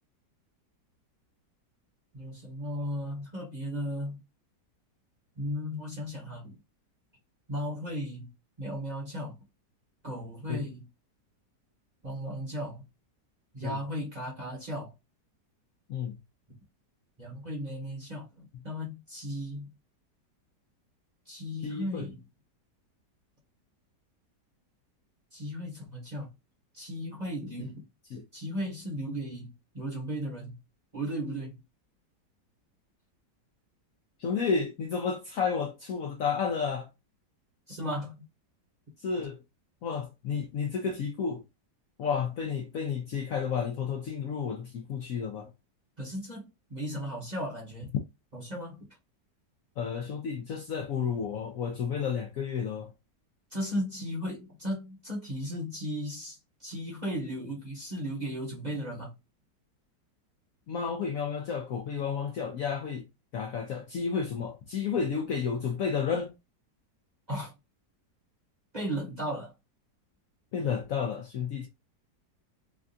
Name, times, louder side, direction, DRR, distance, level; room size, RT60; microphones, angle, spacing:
voice 1, 2.1-4.2 5.4-6.6 7.5-8.3 8.6-9.4 10.0-10.8 12.0-12.8 13.5-14.9 17.2-19.7 21.3-22.2 25.3-26.3 26.7-27.8 28.3-30.6 30.9-31.6 37.7-38.3 46.0-47.9 48.3-48.8 53.5-59.1 67.3-67.5 68.7-69.5, equal, 30° right, 0.9 m, -36 dB
voice 2, 21.6-22.1 27.6-27.7 28.1-28.2 34.2-36.9 39.0-39.4 39.8-41.4 42.0-45.5 49.8-52.9 60.7-63.1 63.3-66.3 70.5-71.7, left 6 dB, 70° left, 0.8 m, -31 dB
3.4 x 2.4 x 2.5 m
omnidirectional pair, 1.9 m